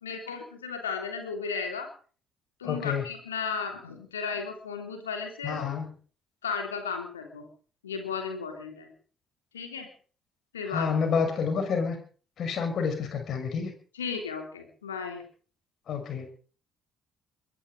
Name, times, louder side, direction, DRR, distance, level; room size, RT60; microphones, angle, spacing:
voice 1, 0.0-1.9 2.6-5.7 6.4-7.4 7.8-8.9 9.5-9.9 10.5-10.9 13.9-15.2, left 5 dB, 85° left, 4 dB, 3.2 m, -34 dB
voice 2, 2.6-3.0 5.4-5.9 10.7-12.0 12.4-13.7 15.9-16.3, left 6 dB, 55° left, 5 dB, 6.0 m, -29 dB
22.5 x 11.5 x 5.1 m, 0.42 s
figure-of-eight pair, 45°, 0 cm